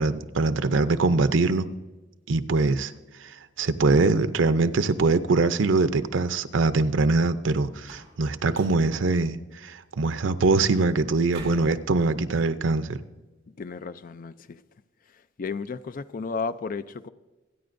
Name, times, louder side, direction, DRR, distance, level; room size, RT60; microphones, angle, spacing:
voice 1, 0.0-1.7 2.3-2.9 3.2-9.4 9.6-13.0, right 3 dB, 90° right, 0.6 m, -23 dB
sound 1, 7.8-8.2 8.5-8.9 11.3-11.8, right 2 dB, 35° right, 3.2 m, -44 dB
voice 2, 13.5-14.6 15.4-17.1, left 4 dB, 45° left, 0.4 m, -33 dB
25.5 x 9.5 x 2.6 m
head